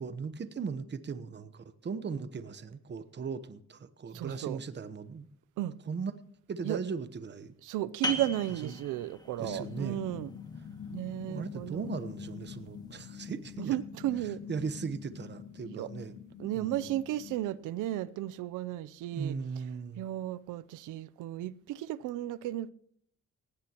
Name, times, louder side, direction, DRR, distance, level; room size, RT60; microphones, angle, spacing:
voice 1, 0.0-5.3 5.9-6.1 6.5-7.5 8.6-8.8 9.4-10.0 11.3-13.8 14.5-16.2 16.6-17.0 19.1-20.0, right 5 dB, 35° right, 1.1 m, -38 dB
voice 2, 4.1-4.6 5.6-5.8 6.6-6.8 7.6-10.3 10.9-12.0 13.6-14.4 15.6-15.9 16.4-19.6 20.0-22.7, right 13 dB, 85° right, 0.6 m, -34 dB
sound 1, 8.0-13.4, left 2 dB, 15° left, 2.1 m, -41 dB
sound 2, 9.4-17.4, left 7 dB, 75° left, 1.8 m, -45 dB
19.0 x 16.0 x 3.0 m
cardioid pair, 90°, 30 cm